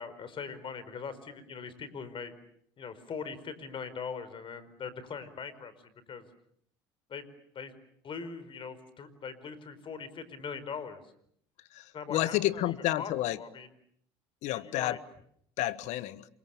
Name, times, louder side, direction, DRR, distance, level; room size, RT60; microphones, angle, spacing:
voice 1, 0.0-2.3 2.8-5.7 6.1-6.2 7.1-7.2 7.5-7.7 8.0-11.0 11.9-12.6 13.0-13.7 14.5-15.0, left 6 dB, 40° left, 14 dB, 4.8 m, -41 dB
voice 2, 11.7-13.4 14.4-15.0 15.6-16.3, left 15 dB, 65° left, 16 dB, 1.3 m, -30 dB
28.5 x 26.0 x 7.3 m, 0.69 s
supercardioid pair, 85°, 13 cm